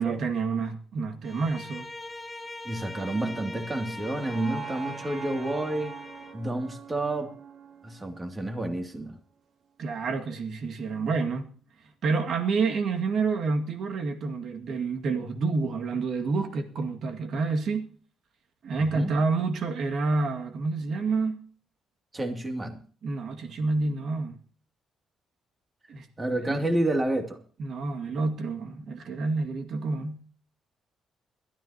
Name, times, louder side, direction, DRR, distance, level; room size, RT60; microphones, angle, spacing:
voice 1, 0.0-1.9 9.8-11.5 12.0-17.9 18.6-21.4 23.0-24.4 25.9-26.1 26.5-26.6 27.6-30.2, right 4 dB, 65° right, 2.2 m, -28 dB
Bowed string instrument, 1.2-6.4, left 2 dB, 20° left, 1.0 m, -42 dB
voice 2, 2.6-5.9 6.3-7.3 7.8-9.2 18.9-19.1 22.1-22.8 26.2-27.4, right 1 dB, 25° right, 2.7 m, -29 dB
sound 1, 2.8-8.9, right 6 dB, 45° right, 1.3 m, -43 dB
22.0 x 13.5 x 3.0 m
cardioid pair, 90°, 0 cm